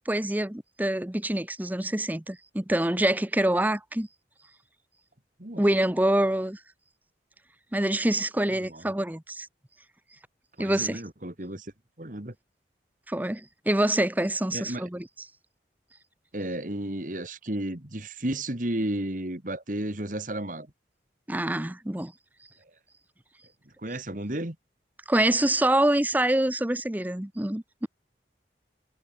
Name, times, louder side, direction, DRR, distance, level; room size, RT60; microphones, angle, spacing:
voice 1, 0.0-4.1 5.6-6.6 7.7-9.5 10.6-11.0 13.1-15.1 21.3-22.1 25.1-27.9, right 1 dB, 10° right, 0.7 m, -26 dB
voice 2, 5.4-5.9 8.5-8.9 10.6-11.7 12.0-12.3 14.5-14.9 16.3-20.7 23.8-24.6, right 1 dB, 50° right, 2.3 m, -33 dB
head